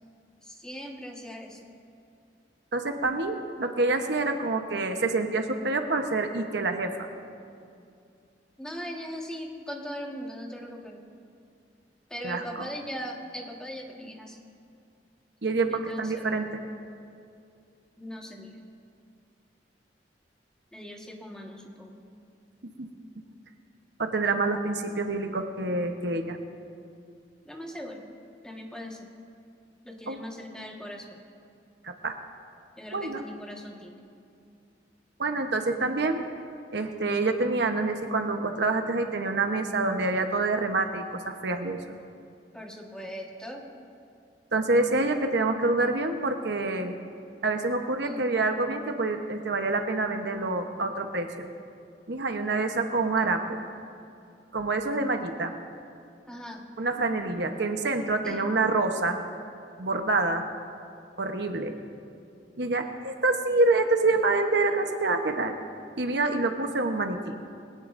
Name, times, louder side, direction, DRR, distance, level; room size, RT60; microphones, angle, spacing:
voice 1, 0.4-1.6 8.6-11.0 12.1-14.4 15.7-16.2 18.0-18.5 20.7-22.0 27.4-28.1 28.4-29.1 29.8-31.2 32.8-34.0 42.5-43.6 48.0-48.2 56.3-56.7 58.2-58.4, equal, 5° left, -1 dB, 1.5 m, -39 dB
voice 2, 2.7-7.0 12.2-12.7 15.4-16.5 22.8-22.9 24.0-26.4 30.1-30.2 31.8-32.2 32.9-33.2 35.2-36.2 36.7-42.0 44.5-47.0 47.4-51.5 52.1-53.6 54.5-55.5 56.8-59.2 59.8-60.4 61.2-61.7 62.6-65.6 66.0-67.4, right 3 dB, 70° right, 5 dB, 1.0 m, -27 dB
21.5 x 17.5 x 2.6 m, 2.5 s
head